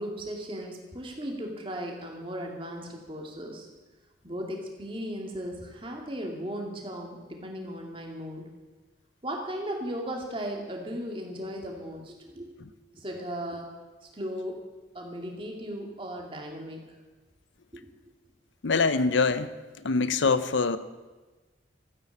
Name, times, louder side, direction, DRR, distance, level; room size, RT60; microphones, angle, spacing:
voice 1, 0.0-3.7 4.2-8.5 9.2-12.5 12.9-13.7 14.0-14.6 14.9-16.8 17.7-17.8, equal, 25° right, 2.4 m, -36 dB
voice 2, 18.6-19.5 19.8-20.8, left 4 dB, 70° left, 0.7 m, -24 dB
14.0 x 9.2 x 8.5 m
head